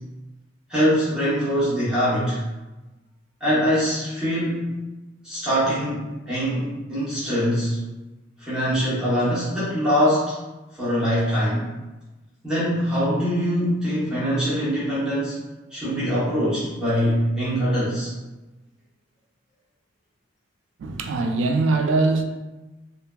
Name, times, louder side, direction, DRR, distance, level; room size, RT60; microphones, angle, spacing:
voice 1, 0.7-2.4 3.4-4.7 5.2-7.8 8.4-10.3 10.8-11.7 12.4-15.4 15.7-18.1, equal, 5° right, 0.8 m, -23 dB
voice 2, 20.8-22.2, right 3 dB, 65° right, 0.3 m, -22 dB
2.9 x 2.4 x 2.2 m
head